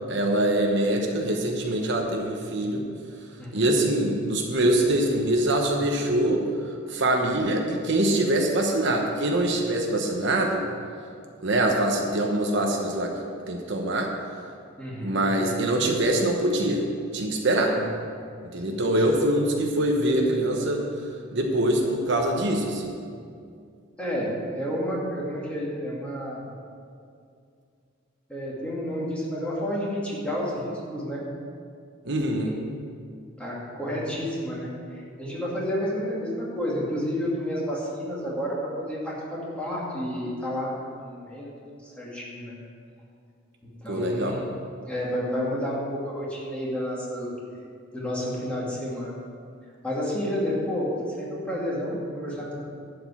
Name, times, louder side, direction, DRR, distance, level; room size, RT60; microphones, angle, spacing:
voice 1, 0.1-2.8 3.5-6.4 6.9-10.6 11.4-13.1 13.5-14.1 15.0-16.8 17.1-17.7 18.5-20.8 21.3-22.9 32.0-32.5 43.9-44.4, right 1 dB, 60° right, 2 dB, 1.1 m, -24 dB
voice 2, 3.4-3.8 14.8-15.3 17.7-17.9 18.7-18.9 24.0-26.4 28.3-31.2 32.2-32.6 33.4-41.5 41.8-42.6 43.8-44.5 44.8-47.3 47.9-49.2 49.8-50.9 51.2-52.6, equal, 5° left, -6 dB, 2.4 m, -30 dB
11.5 x 5.3 x 8.3 m, 2.3 s
head